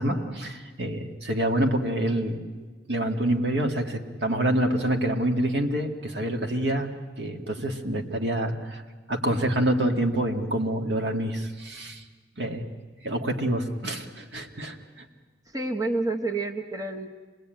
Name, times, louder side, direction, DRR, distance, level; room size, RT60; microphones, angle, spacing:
voice 1, 0.0-2.4 2.9-8.8 9.1-12.0 12.4-12.6 13.0-15.0, right 1 dB, 65° right, 4 dB, 2.0 m, -27 dB
voice 2, 15.5-17.1, right 2 dB, 20° right, 4 dB, 1.0 m, -29 dB
26.5 x 19.5 x 9.1 m, 1.4 s
head